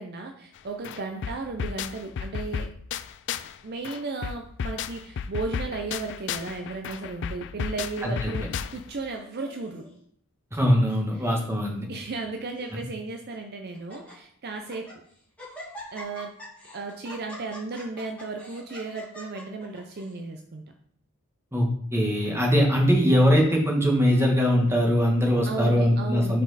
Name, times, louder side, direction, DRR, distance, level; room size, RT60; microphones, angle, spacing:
voice 1, 0.0-2.7 3.6-9.9 11.1-11.3 11.9-14.9 15.9-16.3 16.7-20.6 25.5-26.4, right 3 dB, 45° right, 4 dB, 0.5 m, -35 dB
sound 1, 0.6-0.7 0.8-3.6 3.8-9.0, left 6 dB, 55° left, 0.3 m, -33 dB
voice 2, 8.0-8.5 10.5-11.9 21.5-26.4, equal, 10° right, 0 dB, 1.4 m, -22 dB
Laughter, 9.1-9.9 10.6-11.0 11.3-11.4 12.1-12.8 13.3-13.4 13.7-14.1 14.6-15.0 15.4-20.2, left 1 dB, 5° left, 2.6 m, -44 dB
7.7 x 4.3 x 4.1 m, 0.63 s
head